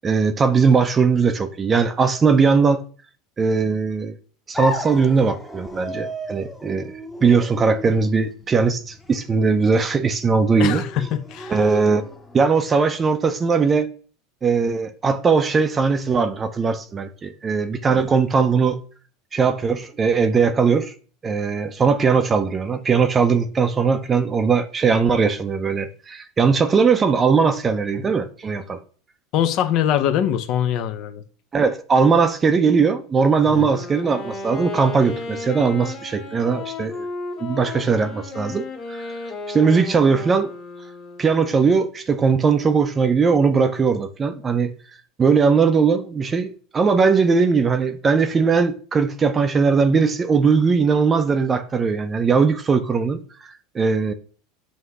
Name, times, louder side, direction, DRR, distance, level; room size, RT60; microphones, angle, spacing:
voice 1, 0.0-2.9 3.4-4.2 4.5-6.9 7.2-10.8 11.5-12.0 12.3-13.9 14.4-18.8 19.3-20.9 21.2-28.8 31.5-37.1 37.4-40.5 41.2-44.7 45.2-53.2 53.7-54.1, right 5 dB, 20° right, 0.6 m, -19 dB
sound 1, 4.5-12.5, left 1 dB, 5° left, 0.9 m, -34 dB
voice 2, 10.6-11.0 11.3-11.7 29.3-31.2 33.5-33.7, left 10 dB, 55° left, 0.7 m, -22 dB
Wind instrument woodwind instrument, 33.4-41.5, left 3 dB, 35° left, 1.9 m, -34 dB
7.8 x 2.8 x 4.7 m
supercardioid pair, 125°, 0 cm